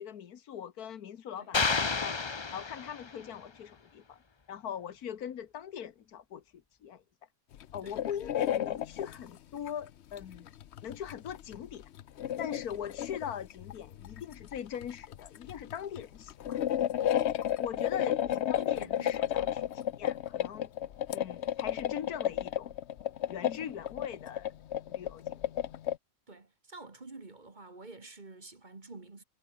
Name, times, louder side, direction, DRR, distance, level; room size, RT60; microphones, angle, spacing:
voice 1, 0.0-2.2 2.5-4.2 4.5-6.4 6.8-7.0 7.7-10.5 10.8-11.8 12.4-16.6 17.6-20.7 21.1-22.7 23.3-24.5 24.9-25.5, left 9 dB, 90° left, 1.7 m, -41 dB
sound 1, 1.5-3.3, left 4 dB, 30° left, 0.5 m, -30 dB
sound 2, 7.5-9.3 9.7-9.8 10.2-26.0, left 11 dB, 60° left, 0.8 m, -33 dB
voice 2, 17.9-18.3 18.6-19.6 26.3-29.2, right 3 dB, 30° right, 1.9 m, -50 dB
omnidirectional pair, 1.5 m